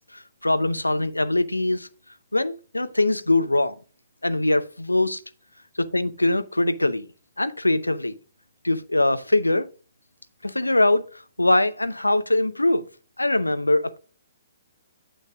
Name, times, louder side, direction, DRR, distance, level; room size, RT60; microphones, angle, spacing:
voice 1, 0.1-1.9 2.3-3.8 4.2-5.2 5.9-7.1 7.4-8.2 8.6-9.7 10.4-12.9 13.2-14.0, left 2 dB, 85° left, 0.6 m, -22 dB
9.0 x 6.5 x 2.4 m
figure-of-eight pair, 125°, 0 cm